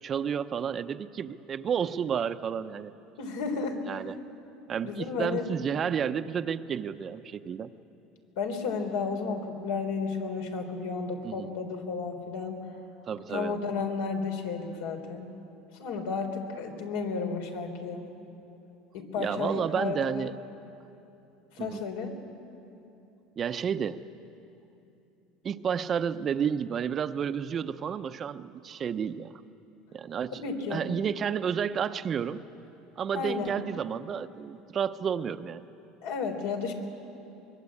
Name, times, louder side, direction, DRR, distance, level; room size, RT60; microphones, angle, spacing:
voice 1, 0.0-2.9 3.9-4.1 4.7-7.7 11.2-11.5 13.1-13.6 19.2-20.3 21.6-21.8 23.4-24.0 25.4-29.4 29.9-30.4 30.7-32.4 33.0-35.7, right 7 dB, 30° right, 11 dB, 0.7 m, -31 dB
voice 2, 3.2-3.8 4.8-5.5 8.4-12.6 13.3-15.3 15.8-18.0 18.9-20.4 21.6-22.1 30.3-30.8 33.1-33.5 36.0-36.7, left 4 dB, 85° left, 4 dB, 3.6 m, -32 dB
24.0 x 21.0 x 8.6 m, 2.9 s
supercardioid pair, 135°, 0 cm